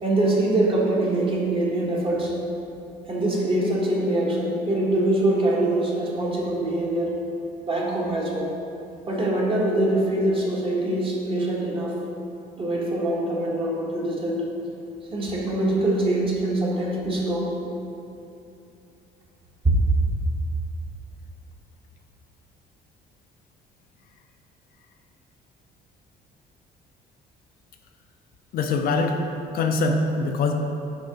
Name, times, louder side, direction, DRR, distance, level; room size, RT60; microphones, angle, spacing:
voice 1, 0.0-2.3 3.1-7.2 7.6-8.5 9.1-11.9 12.6-14.4 15.1-17.5, right 1 dB, 30° right, -3 dB, 1.4 m, -24 dB
voice 2, 28.5-29.2 29.5-30.6, left 3 dB, 60° left, 4 dB, 0.5 m, -23 dB
6.9 x 4.6 x 3.9 m, 2.7 s
cardioid pair, 110°, 17 cm